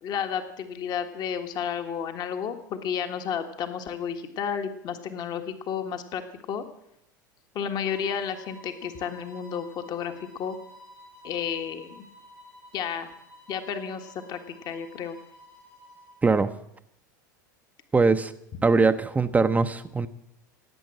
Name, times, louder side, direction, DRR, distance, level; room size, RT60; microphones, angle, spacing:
voice 1, 0.0-6.2 6.5-6.6 7.5-10.6 11.2-12.0 12.7-13.1 13.5-14.4 14.6-15.2, left 7 dB, 45° left, 7 dB, 1.6 m, -32 dB
sound 1, 7.8-16.2, left 1 dB, 70° left, 7.6 m, -51 dB
voice 2, 17.9-18.3 18.6-20.1, right 4 dB, 15° right, 9 dB, 0.7 m, -21 dB
18.0 x 8.6 x 7.7 m, 0.77 s
hypercardioid pair, 85°, 10 cm